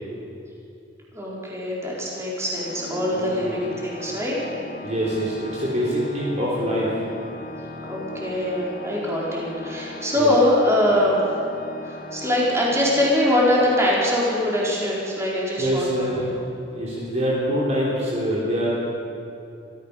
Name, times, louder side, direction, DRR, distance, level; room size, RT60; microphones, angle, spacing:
voice 1, 1.1-4.4 7.9-11.2 11.8-16.2, left 1 dB, 15° right, -5 dB, 5.2 m, -23 dB
Organ, 2.6-13.4, left 1 dB, 45° left, 1.7 m, -37 dB
voice 2, 3.2-3.6 4.8-6.9 10.1-10.3 15.6-16.3 16.7-18.8, equal, 40° right, -6 dB, 4.0 m, -25 dB
25.0 x 15.0 x 7.0 m, 2.7 s
head